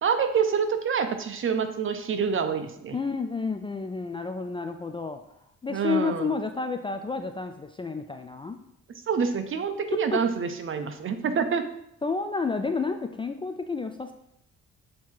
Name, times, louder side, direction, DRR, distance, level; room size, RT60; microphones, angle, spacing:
voice 1, 0.0-3.0 5.7-6.3 9.1-11.6, right 6 dB, 45° right, 8 dB, 0.7 m, -27 dB
voice 2, 2.9-5.2 5.6-8.6 9.9-10.2 12.0-14.1, left 4 dB, 20° left, 6 dB, 0.3 m, -30 dB
7.5 x 2.8 x 4.6 m, 0.77 s
cardioid pair, 90°, 30 cm